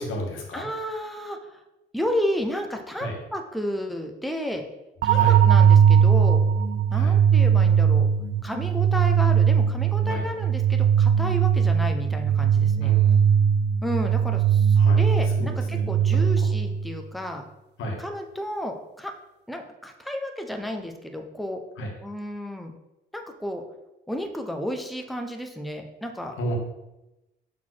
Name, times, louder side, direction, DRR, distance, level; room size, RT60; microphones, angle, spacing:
voice 1, 0.0-0.7 3.0-3.2 5.1-5.4 6.9-7.1 10.1-10.2 12.8-13.4 14.8-15.9 16.4-16.5 17.8-18.0 21.8-21.9 26.4-26.6, equal, 85° left, 1 dB, 1.8 m, -33 dB
voice 2, 0.5-1.6 1.9-4.6 5.0-6.4 6.9-8.1 8.4-12.9 13.8-17.4 18.0-19.1 19.5-21.6 22.0-22.7 23.1-23.6 24.1-26.3, equal, ahead, 4 dB, 1.0 m, -32 dB
sound 1, 5.0-17.0, right 8 dB, 60° right, 0.4 m, -20 dB
6.3 x 4.1 x 6.4 m, 0.96 s
cardioid pair, 90°, 20 cm